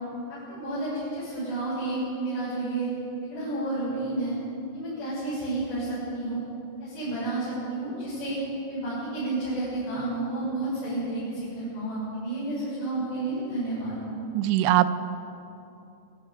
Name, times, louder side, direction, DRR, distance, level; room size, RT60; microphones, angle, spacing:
voice 1, 0.3-2.9 3.2-4.4 4.7-6.4 6.8-8.4 8.7-14.0, right 2 dB, 75° left, -11 dB, 8.5 m, -31 dB
voice 2, 14.3-14.9, right 14 dB, 80° right, 14 dB, 2.5 m, -21 dB
25.0 x 11.5 x 9.1 m, 2.9 s
omnidirectional pair, 5.0 m